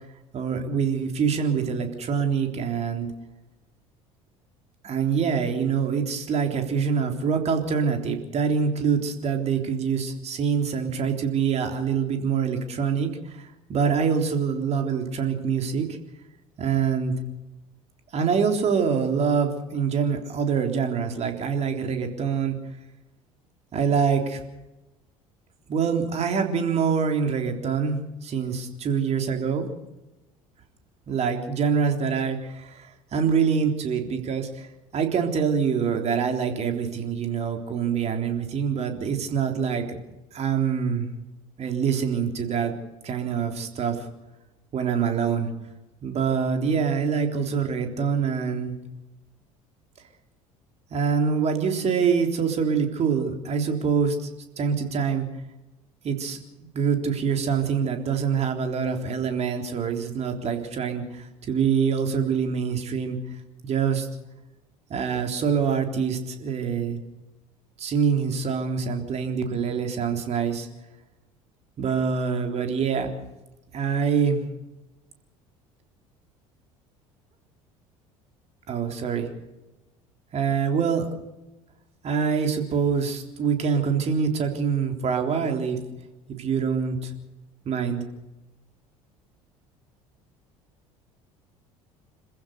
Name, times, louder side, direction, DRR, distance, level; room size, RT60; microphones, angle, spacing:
voice 1, 0.3-3.1 4.8-15.9 16.6-17.1 18.1-22.6 23.7-24.4 25.7-29.7 31.1-34.7 34.9-40.0 40.3-41.1 41.6-42.7 43.0-44.1 44.7-45.5 46.0-48.8 50.9-54.3 54.6-55.3 56.0-56.4 56.7-64.1 64.9-67.0 67.8-70.7 71.8-73.1 73.7-74.4 78.7-79.3 80.3-81.1 82.0-85.8 86.3-87.1 87.7-88.0, right 6 dB, 40° right, 4 dB, 3.6 m, -25 dB
27.0 x 15.5 x 6.7 m, 1.0 s
figure-of-eight pair, 60°, 18 cm